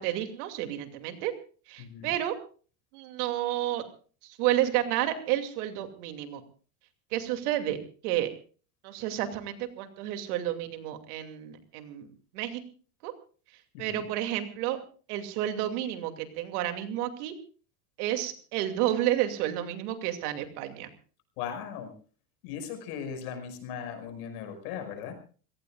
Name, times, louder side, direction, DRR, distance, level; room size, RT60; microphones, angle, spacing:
voice 1, 0.0-1.3 1.7-2.4 2.9-3.8 4.4-6.4 7.1-7.8 8.0-8.3 8.8-12.1 12.3-12.6 13.0-13.1 13.8-14.8 15.1-17.3 18.0-20.9, right 13 dB, 85° right, 6 dB, 2.7 m, -30 dB
voice 2, 1.8-2.1 13.7-14.1 21.4-21.9 22.4-25.1, left 8 dB, 85° left, 6 dB, 5.7 m, -38 dB
28.0 x 17.5 x 2.4 m, 0.39 s
cardioid pair, 175°, 44 cm